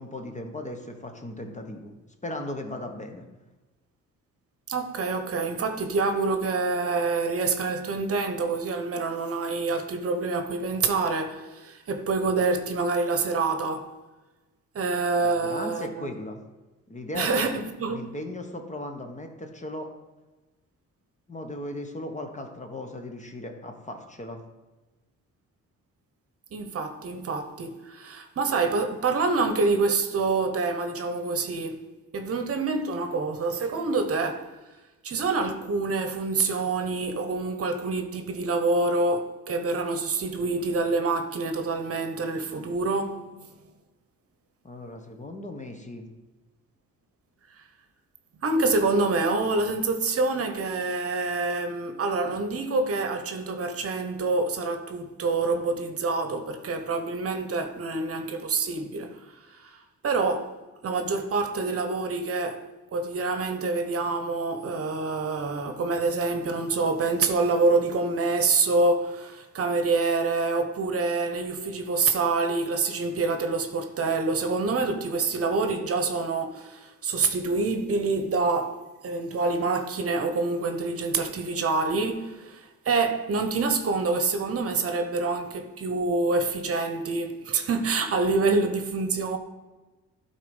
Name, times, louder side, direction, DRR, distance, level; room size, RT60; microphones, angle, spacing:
voice 1, 0.0-1.9 2.2-3.3 15.4-16.4 16.9-17.5 17.9-19.9 21.3-24.4 44.6-46.1, left 1 dB, 25° left, 1.3 m, -37 dB
voice 2, 4.7-13.9 14.7-16.1 17.1-18.0 26.5-31.8 32.1-34.6 35.0-43.4 47.5-47.7 48.4-60.6 60.8-89.4, right 3 dB, 50° right, 1.0 m, -26 dB
11.5 x 4.3 x 5.4 m
cardioid pair, 90°, 30 cm